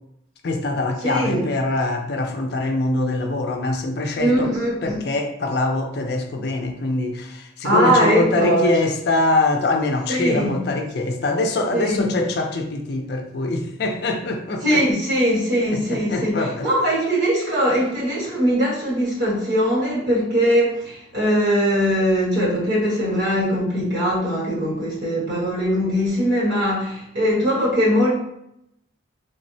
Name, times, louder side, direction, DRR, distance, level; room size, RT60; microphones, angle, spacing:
voice 1, 0.4-4.5 4.8-14.9 15.7-16.7, left 2 dB, 55° left, 0.4 m, -23 dB
voice 2, 1.0-1.4 4.2-5.0 7.6-8.7 10.1-10.6 11.7-12.0 14.6-28.1, equal, 60° right, 1.2 m, -21 dB
3.4 x 2.0 x 2.6 m
head